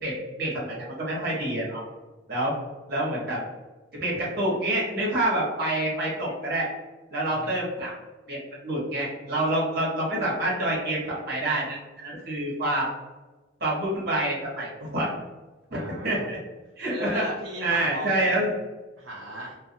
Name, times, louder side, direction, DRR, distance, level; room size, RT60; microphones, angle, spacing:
voice 1, 0.0-1.8 2.3-2.5 2.9-3.4 3.9-6.7 7.1-7.9 8.3-8.4 8.6-12.9 13.6-15.1 15.7-16.4 16.8-17.2 17.6-18.5, right 1 dB, 55° right, -5 dB, 1.1 m, -27 dB
voice 2, 15.7-16.3 16.9-18.5 19.0-19.5, equal, 80° right, -6 dB, 0.6 m, -36 dB
2.4 x 2.3 x 2.7 m, 1.2 s
head